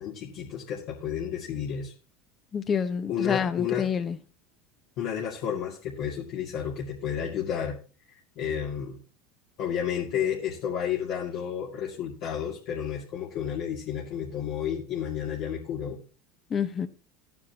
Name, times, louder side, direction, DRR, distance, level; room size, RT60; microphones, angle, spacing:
voice 1, 0.0-1.9 3.1-3.9 5.0-7.8 8.1-9.0 9.6-16.0, left 8 dB, 60° left, 2.4 m, -31 dB
voice 2, 2.5-4.2 16.5-16.9, left 7 dB, 30° left, 1.1 m, -28 dB
14.5 x 9.4 x 3.0 m
hypercardioid pair, 90°, 0 cm